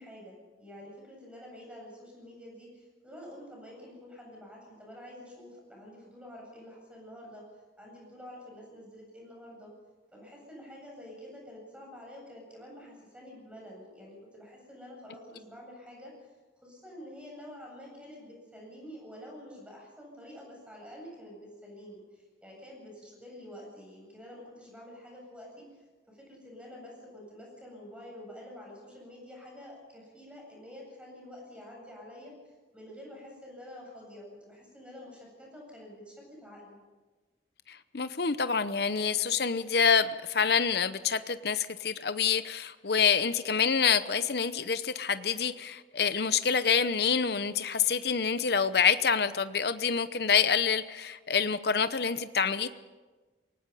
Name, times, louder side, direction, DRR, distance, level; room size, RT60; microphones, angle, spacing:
voice 1, 0.0-7.4 7.8-9.7 10.1-16.1 16.6-25.8 26.1-32.3 32.7-36.8, left 1 dB, 5° right, -2 dB, 8.0 m, -48 dB
voice 2, 37.7-52.7, left 6 dB, 60° left, 12 dB, 0.8 m, -27 dB
27.5 x 18.5 x 5.6 m, 1.3 s
head